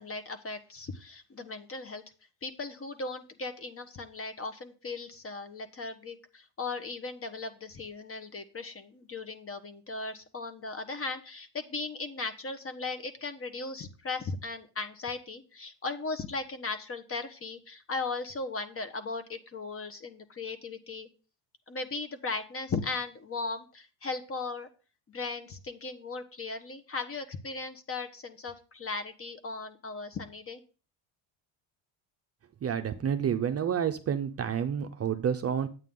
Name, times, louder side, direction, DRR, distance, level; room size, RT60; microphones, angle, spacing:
voice 1, 0.0-2.0 2.4-21.1 21.7-24.7 25.1-30.6, left 3 dB, 30° left, 1.2 m, -37 dB
voice 2, 32.6-35.7, right 8 dB, 30° right, 0.6 m, -29 dB
9.0 x 8.4 x 3.8 m
cardioid pair, 105°, 47 cm